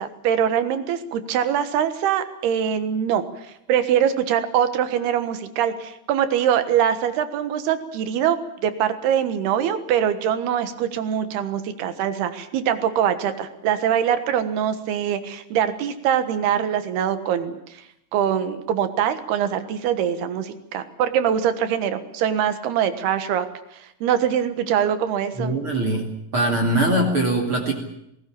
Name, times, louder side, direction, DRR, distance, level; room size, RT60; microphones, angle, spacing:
voice 1, 0.0-3.3 3.7-17.8 18.1-25.5, right 9 dB, 75° right, 10 dB, 3.4 m, -23 dB
voice 2, 25.4-26.1 26.3-27.7, right 1 dB, 35° right, 2 dB, 2.8 m, -21 dB
20.0 x 19.0 x 8.7 m, 0.80 s
omnidirectional pair, 4.7 m